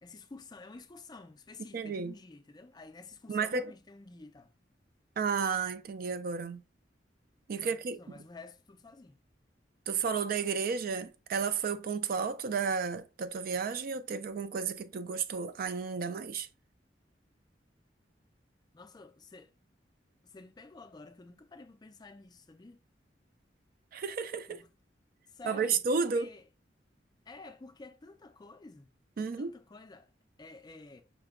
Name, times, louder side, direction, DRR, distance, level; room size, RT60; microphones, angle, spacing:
voice 1, 0.0-4.5 7.6-9.2 18.7-19.5 20.2-22.8 24.5-24.7 25.3-26.4 27.3-28.9 29.2-30.1 30.4-31.0, left 3 dB, 25° left, 0.4 m, -51 dB
voice 2, 1.7-2.1 3.3-3.7 5.2-6.6 7.5-8.0 9.9-16.5 23.9-24.6 25.4-26.3 29.2-29.5, right 5 dB, 55° right, 0.4 m, -32 dB
5.8 x 2.2 x 3.6 m
head